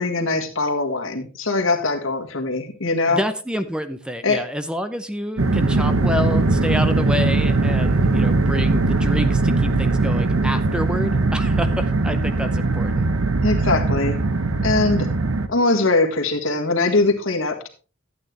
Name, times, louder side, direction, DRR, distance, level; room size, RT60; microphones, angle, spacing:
voice 1, 0.0-3.2 4.2-4.4 13.4-14.2 14.6-15.1 15.5-17.7, left 3 dB, 80° left, 4 dB, 1.7 m, -21 dB
voice 2, 3.1-13.1, equal, 5° right, 10 dB, 0.6 m, -28 dB
sound 1, 5.4-15.5, right 3 dB, 80° right, 0.9 m, -20 dB
11.5 x 8.8 x 3.3 m, 0.36 s
head